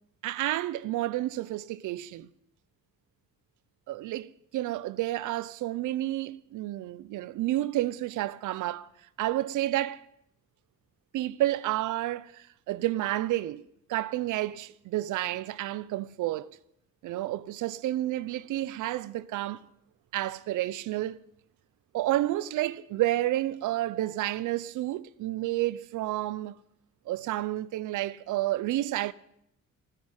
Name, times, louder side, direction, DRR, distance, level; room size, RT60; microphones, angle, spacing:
voice 1, 0.2-2.3 3.9-8.9 9.2-10.0 11.1-13.6 13.9-16.5 17.0-19.6 20.1-21.2 21.9-26.6 27.1-29.1, right 15 dB, 85° right, 0.7 m, -30 dB
14.5 x 10.0 x 8.9 m
cardioid pair, 90°, 30 cm